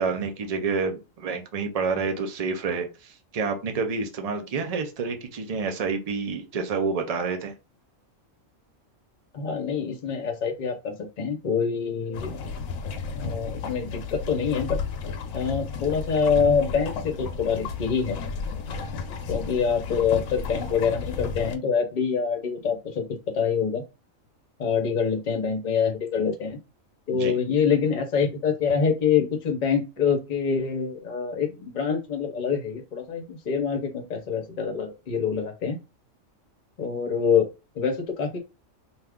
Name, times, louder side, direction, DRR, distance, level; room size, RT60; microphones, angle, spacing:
voice 1, 0.0-7.5 27.1-27.3, right 4 dB, 50° right, 0.4 m, -28 dB
voice 2, 9.3-12.3 13.1-14.8 15.3-18.2 19.3-23.1 23.3-23.8 24.6-26.6 27.1-35.8 36.8-37.5 37.7-38.4, left 6 dB, 45° left, 0.7 m, -25 dB
sound 1, 12.1-21.6, left 5 dB, 85° left, 1.0 m, -33 dB
2.7 x 2.4 x 3.4 m
omnidirectional pair, 1.4 m